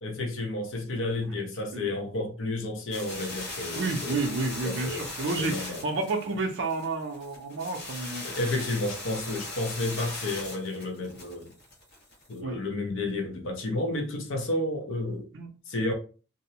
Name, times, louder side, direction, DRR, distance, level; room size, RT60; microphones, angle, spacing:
voice 1, 0.0-4.2 4.6-5.1 5.4-5.8 8.2-11.5 12.3-15.3 15.7-15.9, left 2 dB, 70° left, 0.7 m, -31 dB
sound 1, 2.9-12.3, left 2 dB, 55° left, 1.1 m, -39 dB
voice 2, 3.7-8.3 12.4-12.6 15.3-15.5, right 3 dB, 60° right, 0.4 m, -30 dB
2.5 x 2.0 x 2.8 m
head